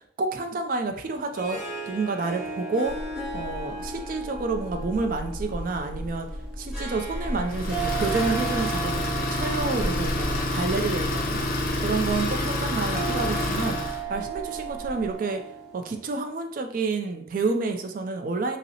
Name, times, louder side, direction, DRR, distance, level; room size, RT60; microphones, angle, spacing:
voice 1, 0.2-1.6 1.9-2.9 3.3-6.3 6.6-15.4 15.7-18.6, right 3 dB, 50° right, 5 dB, 0.3 m, -29 dB
Harp, 1.1-16.3, right 4 dB, 5° right, 0.9 m, -37 dB
sound 1, 2.8-15.1, equal, 75° right, 0.7 m, -38 dB
Idling, 7.5-14.0, left 1 dB, 50° left, 0.6 m, -28 dB
5.3 x 2.0 x 2.8 m, 0.68 s
head